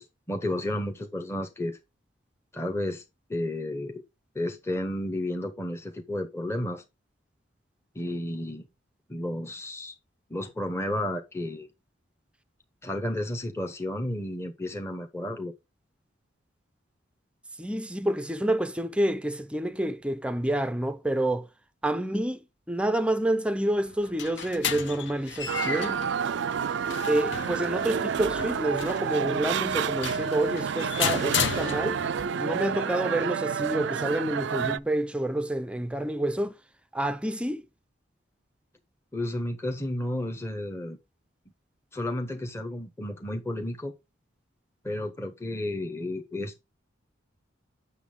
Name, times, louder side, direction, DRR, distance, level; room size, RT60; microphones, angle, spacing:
voice 1, 0.0-1.8 2.5-3.0 3.3-4.0 4.3-6.8 7.9-8.7 9.1-9.9 10.3-11.7 12.8-15.5 39.1-41.0 41.9-43.9 44.8-46.6, left 1 dB, 15° left, 0.8 m, -32 dB
voice 2, 17.6-21.5 21.8-22.4 22.7-26.0 27.1-32.0 32.4-36.6 36.9-37.6, right 1 dB, 5° right, 0.5 m, -28 dB
sound 1, 23.8-32.3, left 6 dB, 60° left, 0.8 m, -34 dB
Istanbul Grand Bazaar Song With Tram, 25.5-34.8, right 7 dB, 60° right, 0.4 m, -29 dB
8.2 x 6.4 x 3.7 m
head